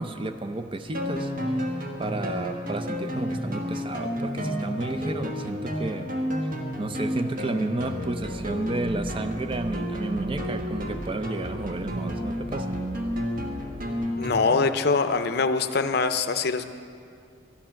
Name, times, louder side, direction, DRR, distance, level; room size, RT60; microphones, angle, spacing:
voice 1, 0.0-1.3 2.0-6.2 6.8-12.8, right 2 dB, 25° right, 8 dB, 0.5 m, -32 dB
sound 1, 0.9-14.7, equal, 45° right, 1.3 m, -31 dB
voice 2, 14.2-16.6, left 4 dB, 55° left, 9 dB, 0.5 m, -23 dB
13.0 x 9.8 x 5.8 m, 2.3 s
head